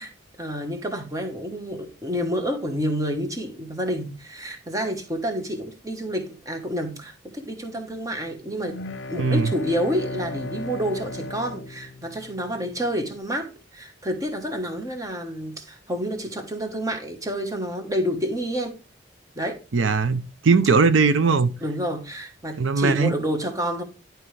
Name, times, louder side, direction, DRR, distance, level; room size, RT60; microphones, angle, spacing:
voice 1, 0.0-8.8 9.1-18.8 19.3-19.6 21.6-23.8, equal, 20° right, 1.2 m, -29 dB
sound 1, 8.6-12.7, left 2 dB, 70° left, 0.6 m, -35 dB
voice 2, 9.2-9.5 19.7-21.5 22.6-23.1, right 4 dB, 85° right, 0.6 m, -19 dB
11.0 x 4.5 x 3.2 m
head